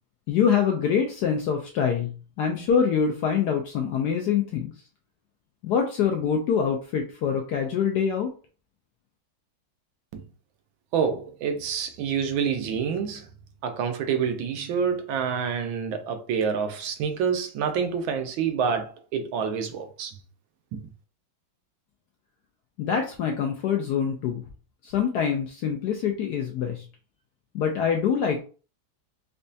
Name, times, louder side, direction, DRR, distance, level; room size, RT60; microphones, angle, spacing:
voice 1, 0.3-4.7 5.6-8.3 22.8-24.4 24.8-26.8 27.5-28.4, left 7 dB, 75° left, 0.9 m, -25 dB
voice 2, 10.9-13.3 13.6-20.2 20.7-20.8, right 6 dB, 85° right, 1.4 m, -27 dB
5.2 x 2.2 x 2.6 m
omnidirectional pair, 2.2 m